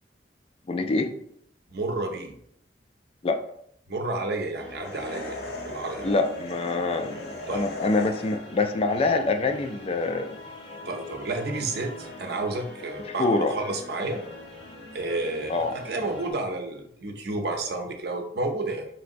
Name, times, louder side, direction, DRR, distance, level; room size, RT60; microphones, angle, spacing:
voice 1, 0.7-1.1 3.2-3.4 6.0-10.3 13.2-13.5 15.5-15.7, left 3 dB, 35° left, 6 dB, 0.3 m, -25 dB
voice 2, 1.7-2.3 3.9-6.1 7.5-7.6 10.9-14.2 14.9-18.9, right 2 dB, 65° right, 4 dB, 0.6 m, -31 dB
sound 1, 4.6-16.3, left 2 dB, 90° left, 1.0 m, -42 dB
sound 2, 4.8-8.7, left 1 dB, 60° left, 0.7 m, -39 dB
4.8 x 3.2 x 2.6 m, 0.68 s
head